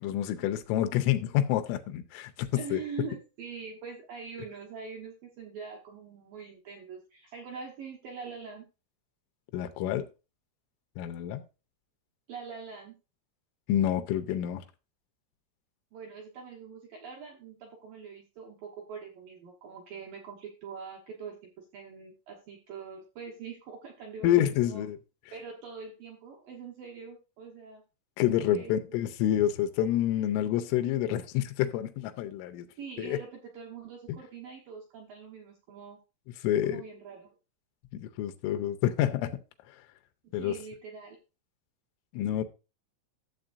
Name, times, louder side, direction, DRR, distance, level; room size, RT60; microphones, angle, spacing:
voice 1, 0.0-2.8 9.5-10.1 11.0-11.4 13.7-14.6 24.2-25.0 28.2-32.7 33.0-33.2 34.1-34.2 36.4-36.8 37.9-39.4 40.3-40.6 42.1-42.4, left 11 dB, 85° left, 3.3 m, -28 dB
voice 2, 2.6-8.7 12.3-13.0 15.9-24.9 25.3-27.8 28.3-29.1 32.8-36.0 36.6-37.3 40.2-41.2, right 5 dB, 70° right, 2.2 m, -44 dB
13.0 x 7.5 x 2.6 m
omnidirectional pair, 5.7 m